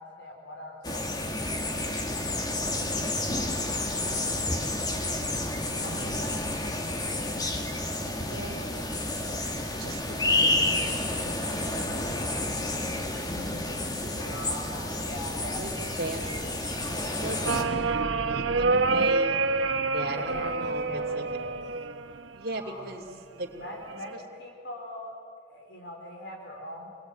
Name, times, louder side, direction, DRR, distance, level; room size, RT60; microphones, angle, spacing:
voice 1, 0.0-1.9 2.3-5.0 5.5-6.2 14.2-16.4 17.2-17.6 20.1-21.6 22.5-23.0 23.6-25.1 25.5-26.9, left 1 dB, 70° left, 0 dB, 4.3 m, -43 dB
sound 1, 0.8-17.6, left 2 dB, 20° left, 1.9 m, -30 dB
voice 2, 5.8-6.5 8.3-8.7 9.7-11.5 11.9-13.5 14.0-14.4 15.6-15.7 16.0-16.5 17.2-19.4 19.9-21.2 22.4-23.1 23.4-23.5 24.1-24.2, right 2 dB, 50° right, 0 dB, 2.8 m, -38 dB
sound 2, 17.5-22.5 23.6-24.1, right 3 dB, 85° right, 1.2 m, -27 dB
28.0 x 22.5 x 9.2 m, 2.3 s
head